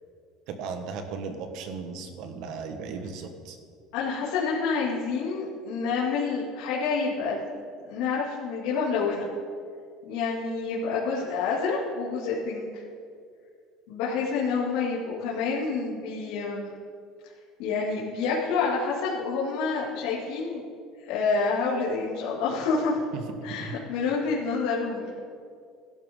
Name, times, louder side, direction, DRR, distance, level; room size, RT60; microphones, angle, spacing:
voice 1, 0.5-3.6 23.1-23.8, right 5 dB, 60° right, 7 dB, 1.4 m, -36 dB
voice 2, 3.9-7.4 7.9-9.3 10.0-12.8 13.9-16.7 17.6-20.6 21.0-23.0 23.4-25.1, left 4 dB, 80° left, -7 dB, 2.6 m, -28 dB
16.5 x 11.5 x 3.8 m, 2.2 s
cardioid pair, 160°, 0 cm